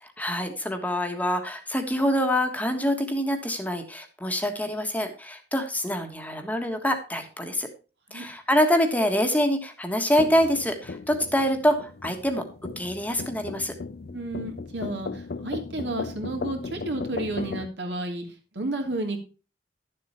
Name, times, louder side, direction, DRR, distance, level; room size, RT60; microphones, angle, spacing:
voice 1, 0.0-7.7 8.1-12.4 12.8-13.7, equal, 10° left, 5 dB, 1.5 m, -25 dB
sound 1, 10.2-17.7, left 3 dB, 60° left, 0.6 m, -37 dB
voice 2, 14.1-18.2 18.5-19.2, right 2 dB, 70° right, 3 dB, 2.8 m, -31 dB
11.5 x 7.6 x 4.3 m, 0.33 s
head